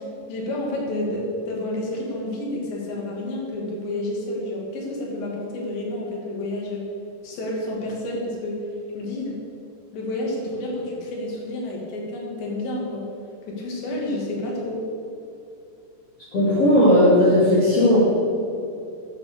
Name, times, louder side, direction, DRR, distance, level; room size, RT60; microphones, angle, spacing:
voice 1, 0.3-6.8 7.2-8.6 8.9-9.4 9.9-13.0 13.5-14.9, left 1 dB, 85° left, -2 dB, 4.8 m, -29 dB
voice 2, 16.3-18.0, left 1 dB, 40° left, -9 dB, 3.4 m, -16 dB
13.0 x 9.7 x 6.9 m, 2.6 s
omnidirectional pair, 4.9 m